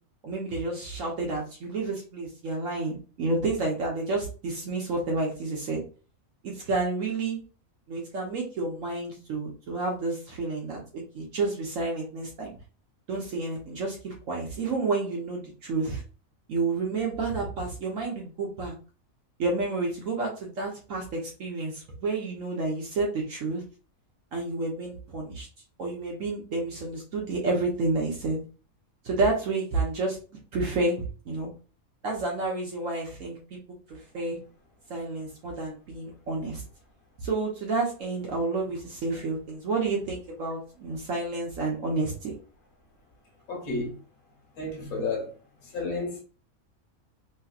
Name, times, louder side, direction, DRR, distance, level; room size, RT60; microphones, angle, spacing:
voice 1, 0.2-5.8 6.4-7.4 7.9-12.5 13.1-16.0 16.5-18.7 19.4-23.6 24.3-25.5 25.8-28.4 29.0-31.5 32.0-33.6 33.9-34.4 34.9-36.6 37.2-42.3, right 3 dB, 70° right, 1.2 m, -30 dB
voice 2, 43.5-44.0 44.6-45.3 45.7-46.2, left 3 dB, 90° left, 1.4 m, -31 dB
3.1 x 3.0 x 2.3 m
omnidirectional pair, 1.5 m